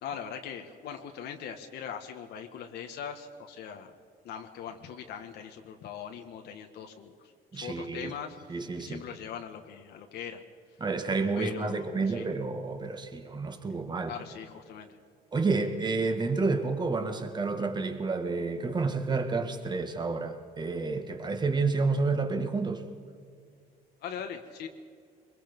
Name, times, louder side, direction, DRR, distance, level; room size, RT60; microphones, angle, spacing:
voice 1, 0.0-3.9 4.2-10.4 11.3-12.3 13.6-13.7 14.1-15.0 24.0-24.7, left 8 dB, 75° left, 4 dB, 1.6 m, -41 dB
voice 2, 7.5-8.1 8.5-9.0 10.8-14.1 15.3-22.8, right 4 dB, 25° right, 6 dB, 2.1 m, -30 dB
24.0 x 22.0 x 5.4 m, 2.2 s
cardioid pair, 110°, 17 cm